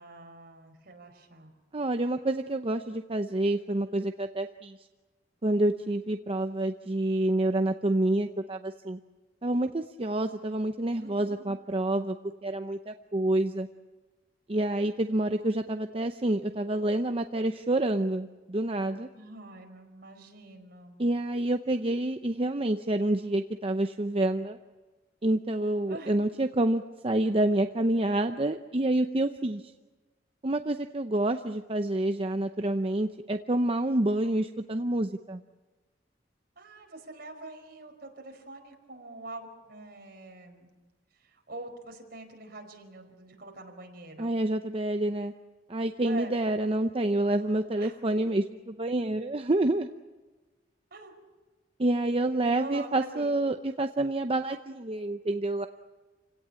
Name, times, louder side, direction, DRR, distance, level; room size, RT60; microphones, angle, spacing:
voice 1, 0.0-1.5 11.0-11.5 19.1-21.0 25.9-26.2 36.5-40.7 41.1-44.4 46.0-46.4 47.8-48.0 50.9-51.1 52.5-53.4, right 2 dB, 55° right, 3 dB, 4.9 m, -45 dB
voice 2, 1.7-4.8 5.4-9.0 9.4-12.2 12.4-13.7 14.5-19.1 21.0-24.6 25.2-29.6 30.4-35.4 44.2-45.3 45.7-49.9 51.8-55.7, right 1 dB, 30° right, 7 dB, 0.7 m, -28 dB
28.5 x 17.5 x 8.8 m, 1.2 s
head